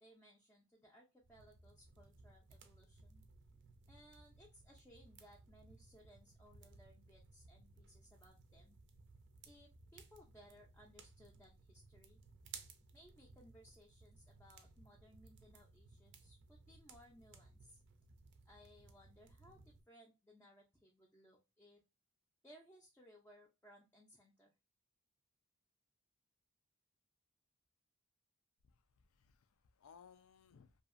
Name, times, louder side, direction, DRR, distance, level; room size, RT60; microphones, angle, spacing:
voice 1, 0.0-3.2 3.9-8.8 9.5-12.2 12.9-17.8 18.5-21.8 22.4-24.5, equal, 10° left, 0.5 m, -64 dB
sound 1, 1.2-19.8, right 4 dB, 55° right, 0.5 m, -61 dB
voice 2, 28.6-30.8, left 6 dB, 80° left, 0.4 m, -64 dB
2.7 x 2.4 x 2.4 m
head